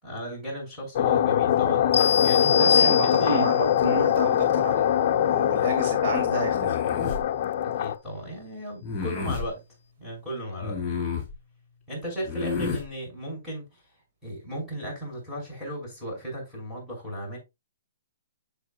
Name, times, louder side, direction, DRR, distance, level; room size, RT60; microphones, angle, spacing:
voice 1, 0.0-3.4 7.6-9.6 10.0-10.8 11.9-13.8 14.2-17.4, equal, ahead, 5.6 m, -35 dB
sound 1, 1.0-8.0, left 10 dB, 45° left, 0.7 m, -23 dB
sound 2, 1.9-3.7, left 6 dB, 80° left, 0.5 m, -24 dB
voice 2, 2.5-6.8, right 4 dB, 40° right, 2.1 m, -31 dB
sound 3, 6.5-7.2 8.8-9.5 10.6-11.3 12.2-12.9, left 5 dB, 20° left, 4.6 m, -30 dB
8.1 x 7.4 x 2.4 m
hypercardioid pair, 150°, 0 cm